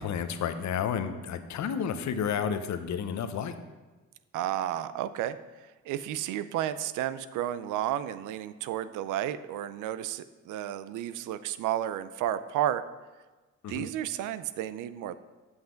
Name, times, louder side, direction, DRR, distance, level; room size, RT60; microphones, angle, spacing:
voice 1, 0.0-3.6 13.6-13.9, left 7 dB, 65° left, 10 dB, 0.8 m, -31 dB
voice 2, 4.3-5.4 5.9-12.8 13.7-15.1, right 11 dB, 90° right, 14 dB, 0.5 m, -32 dB
8.0 x 5.7 x 5.1 m, 1.2 s
cardioid pair, 90°, 30 cm